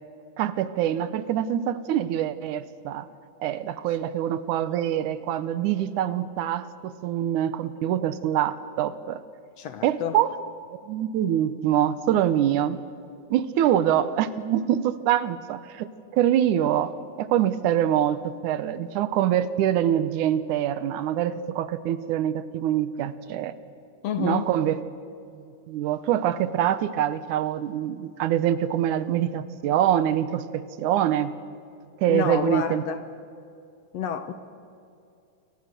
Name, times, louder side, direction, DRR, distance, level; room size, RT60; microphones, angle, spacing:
voice 1, 0.4-3.1 3.4-9.2 9.8-10.3 10.8-12.8 13.3-16.9 17.2-23.5 24.2-24.8 25.4-31.3 32.0-32.8, right 11 dB, 80° right, 2.3 m, -25 dB
voice 2, 9.6-10.2 24.0-24.5 32.1-33.0 33.9-34.3, left 8 dB, 65° left, 1.9 m, -29 dB
29.0 x 23.5 x 6.8 m
omnidirectional pair, 3.6 m